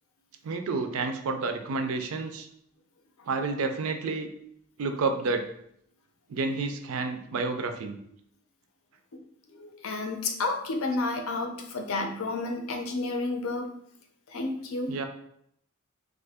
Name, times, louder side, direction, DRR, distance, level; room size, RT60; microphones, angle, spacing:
voice 1, 0.4-2.5 3.3-4.3 4.8-5.5 6.3-8.0 14.9-15.1, right 3 dB, 90° right, 6 dB, 0.4 m, -30 dB
voice 2, 9.5-13.7 14.3-14.9, left 3 dB, 85° left, 4 dB, 0.5 m, -31 dB
2.6 x 2.5 x 3.4 m, 0.72 s
head